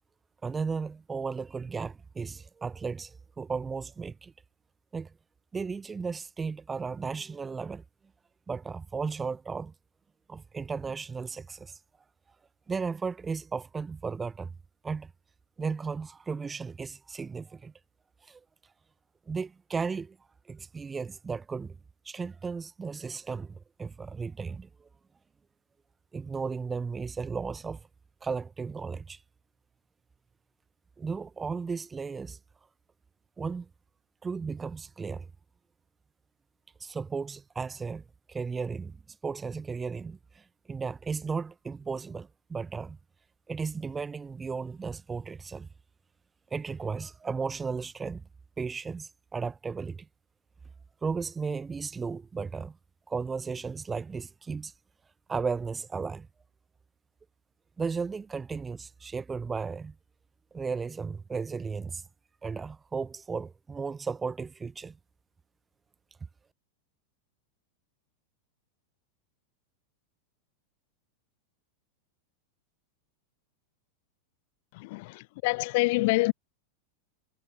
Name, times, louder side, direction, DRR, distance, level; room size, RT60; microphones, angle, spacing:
voice 1, 0.4-4.3 4.9-5.1 5.5-7.8 8.5-9.7 10.3-11.8 12.7-14.5 14.8-15.1 15.6-17.7 18.2-18.7 19.3-20.2 20.5-21.8 22.0-24.9 26.1-27.9 28.2-29.2 31.0-32.4 33.4-33.7 34.2-35.3 36.8-43.0 43.5-45.7 46.5-48.3 48.6-50.1 51.0-52.8 53.1-54.7 55.3-56.3 57.8-59.9 60.5-62.1 62.4-65.0, right 5 dB, 15° right, 1.0 m, -35 dB
voice 2, 74.7-76.3, left 24 dB, 50° left, 0.3 m, -26 dB
figure-of-eight pair, 90°, 0 cm